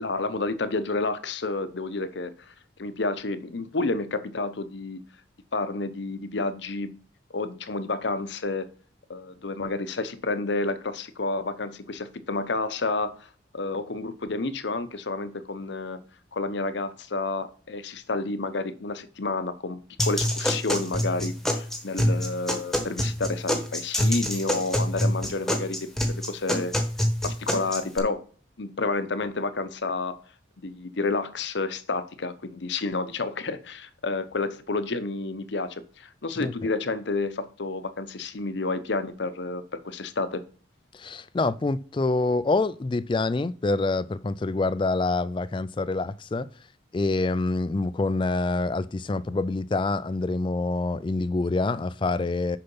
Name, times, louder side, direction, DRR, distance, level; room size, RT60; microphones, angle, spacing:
voice 1, 0.0-2.5 2.8-5.0 5.5-6.9 7.3-8.7 9.1-13.3 13.5-16.0 16.3-25.8 26.0-26.8 27.2-28.2 28.6-30.2 30.6-40.4, left 3 dB, 65° left, 0.8 m, -30 dB
sound 1, 20.0-28.0, equal, ahead, 1.1 m, -26 dB
voice 2, 40.9-46.5 46.9-52.6, left 3 dB, 25° left, 0.3 m, -26 dB
6.8 x 5.6 x 5.4 m
head